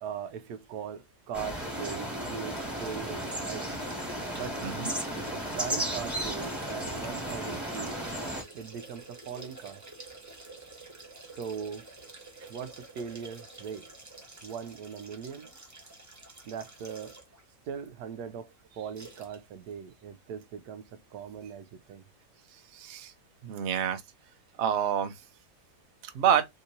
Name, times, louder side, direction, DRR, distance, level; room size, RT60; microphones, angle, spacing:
voice 1, 0.0-3.7 4.4-4.6 5.2-8.0 8.5-9.8 11.4-11.9 12.5-13.9 14.4-15.5 16.4-17.2 17.7-18.5 18.8-22.0, right 7 dB, 80° right, 1.1 m, -40 dB
sound 1, 1.3-8.4, equal, ahead, 1.3 m, -34 dB
sound 2, 2.4-17.4 17.8-17.9 18.9-19.4 19.7-19.8, right 3 dB, 20° right, 0.5 m, -49 dB
voice 2, 4.6-4.9 22.7-23.1 23.4-24.0 24.6-25.1 26.0-26.5, right 9 dB, 60° right, 0.8 m, -27 dB
3.6 x 2.8 x 2.6 m
omnidirectional pair, 1.7 m